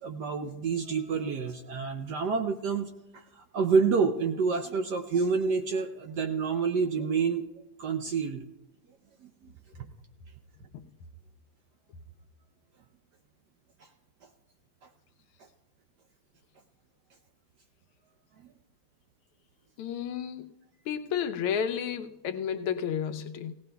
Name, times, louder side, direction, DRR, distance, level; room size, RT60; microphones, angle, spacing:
voice 1, 0.0-7.4 7.8-8.4 9.4-9.5 18.4-18.5, right 5 dB, 70° right, 1.0 m, -28 dB
voice 2, 19.8-20.5 20.9-23.5, left 8 dB, 85° left, 1.6 m, -31 dB
17.5 x 17.0 x 2.3 m
omnidirectional pair, 2.3 m